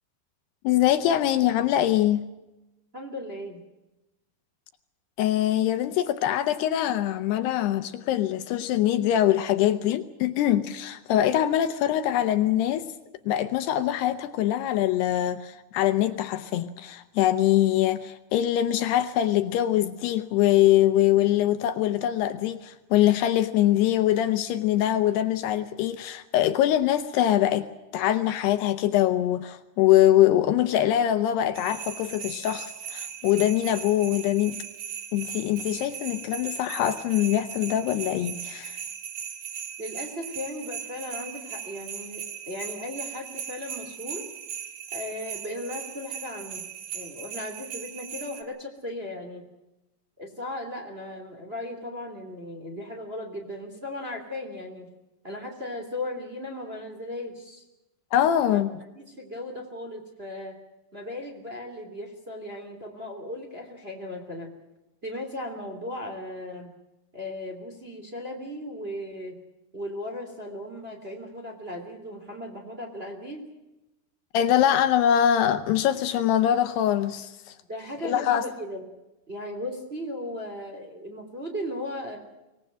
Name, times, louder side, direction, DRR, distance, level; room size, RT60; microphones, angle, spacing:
voice 1, 0.6-2.2 5.2-12.9 13.2-27.7 27.9-34.5 35.1-38.8 58.1-58.7 74.3-77.6 78.0-78.4, left 12 dB, 75° left, 10 dB, 2.8 m, -23 dB
voice 2, 2.9-3.6 39.8-44.3 44.9-46.6 46.9-49.4 50.2-54.9 55.2-57.6 58.5-58.6 58.9-60.6 60.9-64.5 65.0-66.7 67.1-69.4 69.7-73.5 77.7-78.9 79.3-82.2, left 1 dB, 15° right, 2 dB, 2.6 m, -37 dB
sound 1, 31.5-48.4, right 8 dB, 55° right, 2.0 m, -38 dB
24.5 x 19.0 x 7.6 m, 0.97 s
omnidirectional pair, 5.1 m